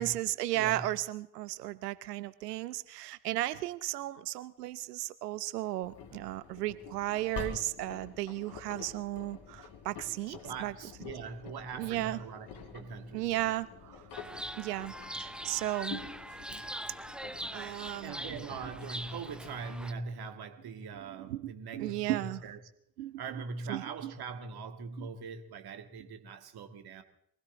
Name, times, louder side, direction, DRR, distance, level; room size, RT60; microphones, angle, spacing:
voice 1, 0.0-10.7 11.7-12.2 13.1-14.0 14.6-14.9 15.2-16.0 17.5-18.4 21.1-22.4 23.0-23.2 23.7-24.1 25.0-25.1, right 15 dB, 75° right, 16 dB, 0.8 m, -35 dB
voice 2, 0.5-0.9 10.3-13.5 18.0-22.6 23.2-27.0, right 5 dB, 50° right, 8 dB, 2.1 m, -42 dB
Engine, 5.8-20.0, left 6 dB, 55° left, 3.0 m, -48 dB
Chirp tweet, 14.1-19.9, right 1 dB, ahead, 0.7 m, -42 dB
23.0 x 16.0 x 3.9 m, 0.72 s
figure-of-eight pair, 50°, 47 cm